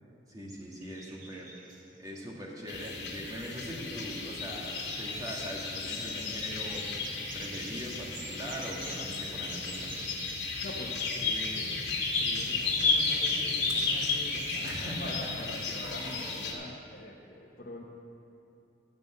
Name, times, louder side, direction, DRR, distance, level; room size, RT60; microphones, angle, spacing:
voice 1, 0.3-1.5 2.0-6.9 7.3-10.1 14.6-15.5, equal, 20° right, -3 dB, 1.8 m, -41 dB
sound 1, 0.5-2.0 3.2-3.3 3.8-10.6 10.9-16.1, right 3 dB, 50° right, 1.2 m, -51 dB
sound 2, 2.7-16.5, left 4 dB, 75° left, 2.0 m, -33 dB
voice 2, 10.6-17.8, left 1 dB, 60° left, -4 dB, 1.0 m, -44 dB
12.0 x 5.4 x 8.3 m, 2.9 s
head